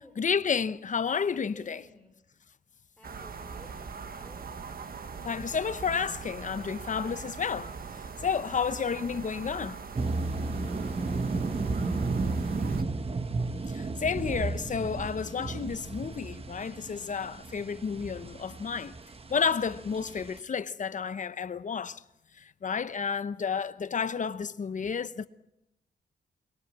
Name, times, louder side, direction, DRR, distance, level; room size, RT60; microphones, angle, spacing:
voice 1, 0.2-1.8 5.2-7.7 8.2-9.8 13.7-19.0 19.3-22.0 22.4-25.3, left 6 dB, 45° left, 0.9 m, -31 dB
voice 2, 1.4-2.1 3.0-4.5 11.0-12.4 23.1-23.2, left 1 dB, 5° left, 3.6 m, -56 dB
sound 1, 3.0-12.8, right 5 dB, 55° right, 1.5 m, -41 dB
sound 2, 10.0-20.4, right 3 dB, 30° right, 1.1 m, -33 dB
24.0 x 21.5 x 7.5 m
wide cardioid pair, 125°, 19 cm